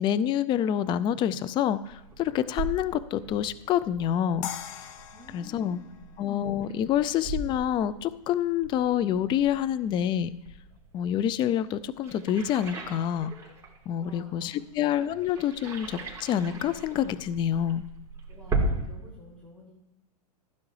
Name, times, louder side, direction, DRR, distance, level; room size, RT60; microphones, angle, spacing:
voice 1, 0.0-4.5 5.3-5.8 6.2-10.3 10.9-13.3 13.9-17.8, left 10 dB, 25° left, 15 dB, 0.4 m, -27 dB
sound 1, 1.0-18.9, right 2 dB, 15° right, 3.6 m, -38 dB
sound 2, 4.4-7.5, left 10 dB, 50° left, 1.1 m, -42 dB
voice 2, 5.1-6.1 14.0-14.7 18.3-19.7, left 1 dB, 5° left, -7 dB, 4.0 m, -51 dB
15.5 x 9.6 x 3.3 m, 0.94 s
hypercardioid pair, 120°, 21 cm